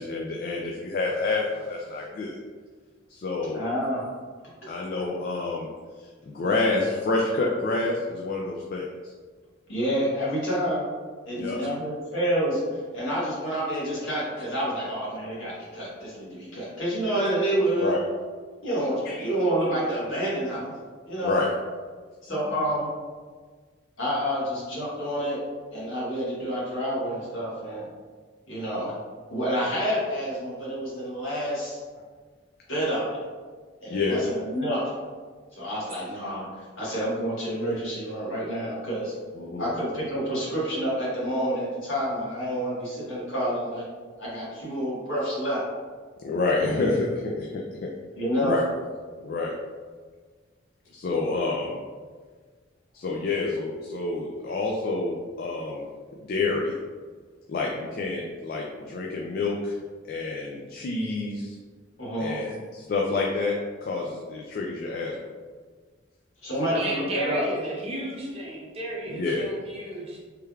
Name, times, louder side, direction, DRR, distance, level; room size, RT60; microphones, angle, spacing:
voice 1, 0.0-2.4 3.1-3.6 4.7-5.7 6.3-8.8 11.4-11.6 17.8-18.0 19.1-19.3 21.2-21.5 33.9-34.2 39.4-39.7 46.2-47.9 48.4-48.6 49.2-49.5 50.9-51.8 52.9-55.9 56.3-56.8 57.5-59.7 60.1-61.6 62.2-63.5 63.8-65.2 66.6-66.8 69.1-69.5, left 3 dB, 45° left, -1 dB, 0.3 m, -28 dB
voice 2, 3.5-4.1 9.7-10.8 11.3-12.6 12.9-17.9 18.6-20.7 21.0-21.4 22.2-22.9 24.0-25.4 25.7-27.9 28.5-28.9 29.3-31.8 32.7-33.2 33.8-34.9 35.5-36.5 36.8-39.1 39.6-43.8 44.2-45.6 46.6-46.8 48.2-48.6 62.0-62.4 66.4-67.4, equal, 80° left, -7 dB, 1.4 m, -28 dB
voice 3, 66.7-70.2, right 1 dB, 30° right, -3 dB, 0.6 m, -34 dB
3.3 x 3.2 x 2.3 m, 1.5 s
head